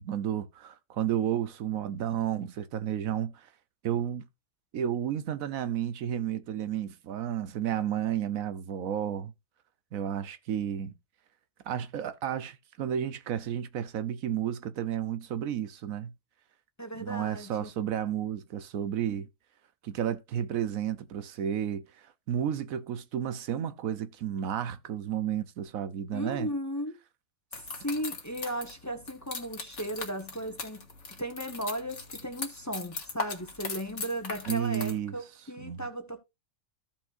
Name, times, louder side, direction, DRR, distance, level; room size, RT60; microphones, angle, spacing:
voice 1, 0.0-3.5 3.8-4.2 4.7-9.3 9.9-10.9 11.6-16.1 17.0-19.3 19.8-26.5 34.5-35.1 35.6-35.8, right 10 dB, 85° right, 1.2 m, -32 dB
voice 2, 16.8-17.7 26.1-27.0 27.5-30.8 31.2-36.2, equal, 15° left, 1.2 m, -36 dB
sound 1, 27.5-34.9, left 4 dB, 60° left, 1.9 m, -39 dB
14.5 x 5.4 x 2.6 m
omnidirectional pair, 1.4 m